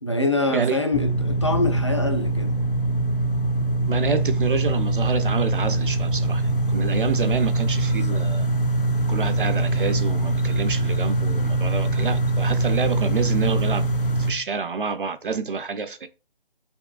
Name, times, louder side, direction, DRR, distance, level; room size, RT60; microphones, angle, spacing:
voice 1, 0.0-2.5 8.1-8.2, left 2 dB, 30° left, 0.4 m, -24 dB
sound 1, 0.9-14.3, right 2 dB, 60° left, 0.7 m, -23 dB
voice 2, 3.9-8.5 9.1-13.9 14.2-16.1, right 5 dB, 60° right, 0.4 m, -28 dB
4.6 x 3.5 x 2.3 m
figure-of-eight pair, 160°, 31 cm